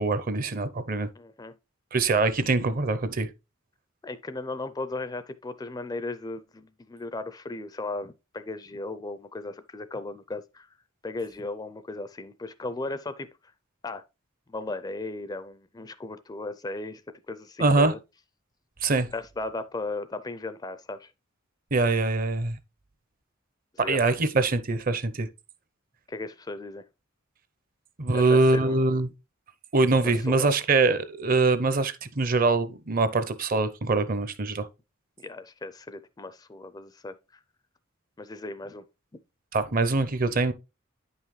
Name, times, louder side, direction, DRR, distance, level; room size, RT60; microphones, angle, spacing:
voice 1, 0.0-1.1 1.9-3.3 17.6-17.9 18.8-19.1 21.7-22.6 23.8-25.3 28.0-29.1 29.7-34.7 39.5-40.5, right 3 dB, 40° right, 0.6 m, -23 dB
voice 2, 1.2-1.6 4.0-10.7 11.0-13.3 13.8-14.0 14.5-17.0 17.3-18.0 19.1-21.1 23.8-24.0 26.1-26.8 28.1-28.9 30.0-30.5 35.2-37.1 38.2-38.8, left 2 dB, 20° left, 0.4 m, -36 dB
9.5 x 5.6 x 3.1 m
head